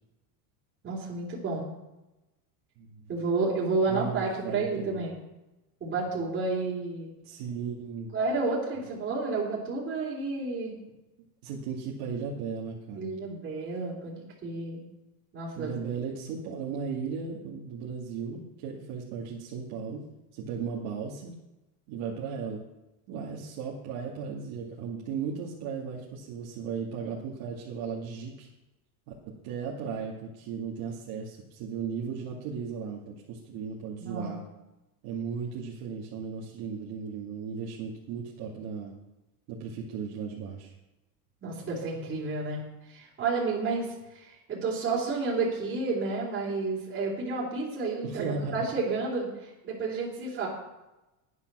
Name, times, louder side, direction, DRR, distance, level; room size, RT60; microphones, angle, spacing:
voice 1, 0.8-1.7 3.1-5.2 5.8-7.1 8.1-10.7 13.0-14.8 15.3-15.7 34.0-34.3 41.4-42.6 42.9-50.5, right 3 dB, 25° right, -6 dB, 3.7 m, -31 dB
voice 2, 2.8-3.1 3.9-5.1 7.2-8.1 11.4-13.1 15.6-20.1 20.3-21.3 21.9-22.6 23.1-28.5 29.3-34.4 35.0-38.9 39.5-40.7 48.0-48.7, right 6 dB, 60° right, -4 dB, 2.5 m, -36 dB
11.5 x 9.6 x 6.3 m, 0.97 s
cardioid pair, 145°, 42 cm